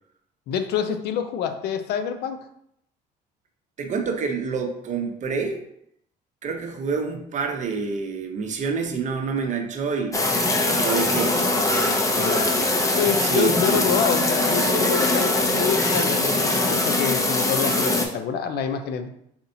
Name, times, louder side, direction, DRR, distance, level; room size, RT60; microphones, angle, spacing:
voice 1, 0.5-2.4 12.1-12.5 12.9-19.1, left 7 dB, 75° left, 8 dB, 0.5 m, -26 dB
voice 2, 3.8-5.6 6.4-10.2 10.8-11.4 13.2-13.9, right 5 dB, 45° right, 4 dB, 0.7 m, -27 dB
sound 1, 10.1-18.1, left 2 dB, 20° left, 0.7 m, -22 dB
4.3 x 4.0 x 2.7 m, 0.73 s
cardioid pair, 110°, 17 cm